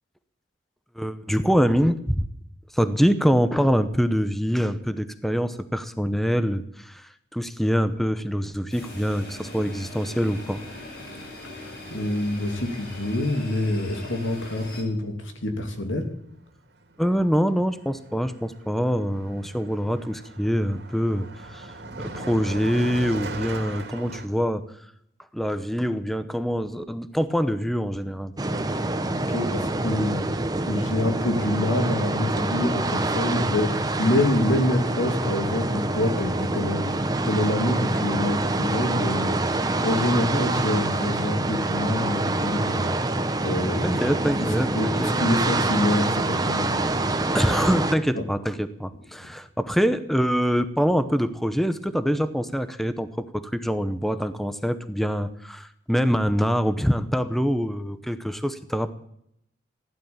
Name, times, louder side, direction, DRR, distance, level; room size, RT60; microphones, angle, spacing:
voice 1, 0.9-2.2 2.7-10.6 17.0-24.6 25.3-28.3 40.2-40.4 43.8-44.7 45.0-45.1 47.3-58.9, equal, ahead, 11 dB, 0.8 m, -25 dB
sound 1, 8.7-14.8, left 1 dB, 55° left, 5.4 m, -40 dB
voice 2, 11.5-16.1 29.3-30.3 30.7-43.1 43.4-44.0 44.4-47.1 48.2-48.3 49.2-49.3, left 1 dB, 90° left, 5 dB, 2.9 m, -26 dB
Car passing by, 16.8-17.0 17.3-24.3, right 2 dB, 60° right, 2.5 m, -38 dB
sound 2, 28.4-47.9, right 2 dB, 20° right, 1.0 m, -26 dB
15.5 x 11.5 x 7.2 m, 0.72 s
head